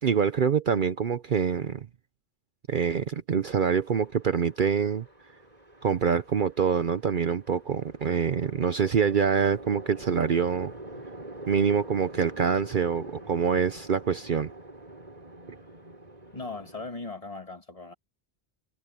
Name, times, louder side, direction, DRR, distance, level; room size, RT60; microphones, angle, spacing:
voice 1, 0.0-1.9 2.7-5.1 5.8-10.7 11.5-14.5, right 7 dB, 50° right, 0.8 m, -25 dB
Chatter / Traffic noise roadway noise / Train, 3.5-16.9, right 2 dB, 35° right, 6.0 m, -45 dB
voice 2, 16.3-17.9, left 3 dB, 30° left, 1.9 m, -38 dB
omnidirectional pair, 1.2 m